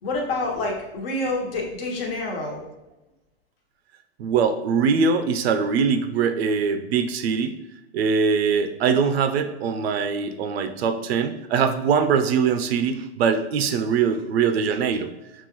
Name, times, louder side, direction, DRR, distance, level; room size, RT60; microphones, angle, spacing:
voice 1, 0.0-2.6, left 2 dB, 60° left, 0 dB, 1.2 m, -27 dB
voice 2, 4.2-7.6 7.9-15.1, right 6 dB, 70° right, 8 dB, 0.5 m, -22 dB
5.4 x 2.4 x 3.0 m, 1.0 s
supercardioid pair, 155°, 32 cm